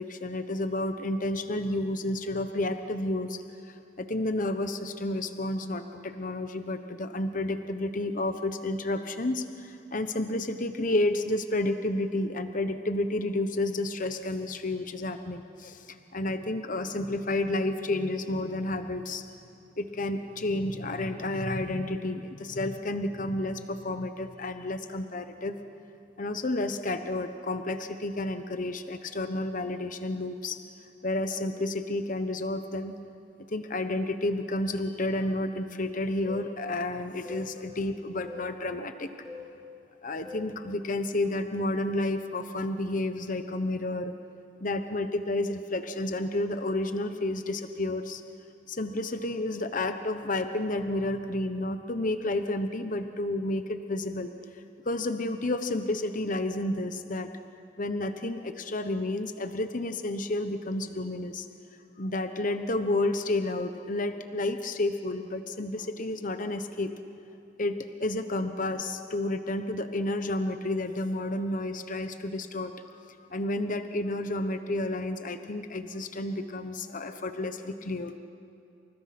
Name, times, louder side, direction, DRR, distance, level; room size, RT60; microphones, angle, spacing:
voice 1, 0.0-19.2 19.8-25.6 26.2-30.6 31.0-32.9 33.5-39.1 40.0-44.1 44.6-48.2 48.7-57.3 57.8-61.5 62.0-67.0 67.6-78.2, left 2 dB, 45° left, 8 dB, 1.1 m, -31 dB
sound 1, 36.3-36.5 37.3-37.5 38.3-38.5 39.3-39.5 40.3-40.5 41.3-41.6, left 4 dB, ahead, 6.3 m, -42 dB
29.5 x 28.0 x 6.0 m, 2.6 s
head